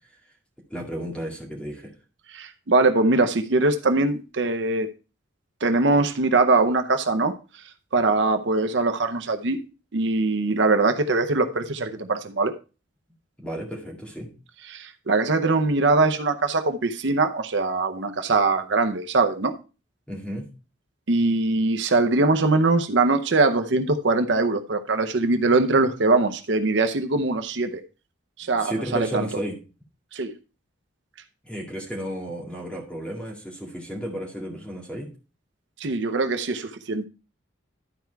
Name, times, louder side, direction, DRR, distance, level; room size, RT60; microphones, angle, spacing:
voice 1, 0.7-1.9 13.4-14.3 20.1-20.5 28.4-29.6 31.4-35.1, equal, 5° left, 2.1 m, -33 dB
voice 2, 2.3-4.9 5.6-7.3 7.9-9.6 9.9-12.5 14.7-19.5 21.1-27.8 28.4-29.3 30.1-30.4 35.8-37.1, right 3 dB, 65° right, 0.7 m, -22 dB
11.5 x 4.6 x 4.5 m
head